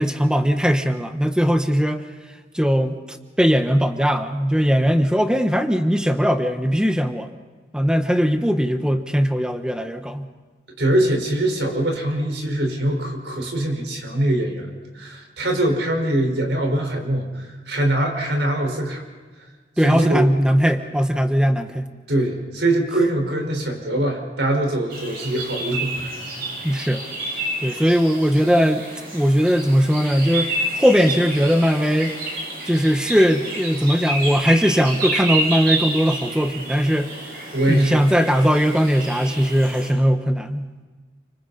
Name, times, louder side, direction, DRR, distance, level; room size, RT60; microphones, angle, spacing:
voice 1, 0.0-2.0 2.5-7.3 7.7-10.3 19.8-21.9 26.6-27.0 27.6-28.8 29.1-32.1 32.7-37.1 37.7-40.7, equal, 5° right, 7 dB, 1.0 m, -19 dB
voice 2, 10.8-14.7 14.9-19.0 19.8-20.3 22.1-26.2 27.7-27.8 37.5-38.0, right 1 dB, 85° right, 2 dB, 5.2 m, -23 dB
sound 1, 24.9-39.9, right 1 dB, 55° right, 7.7 m, -29 dB
29.5 x 25.5 x 4.3 m, 1.4 s
head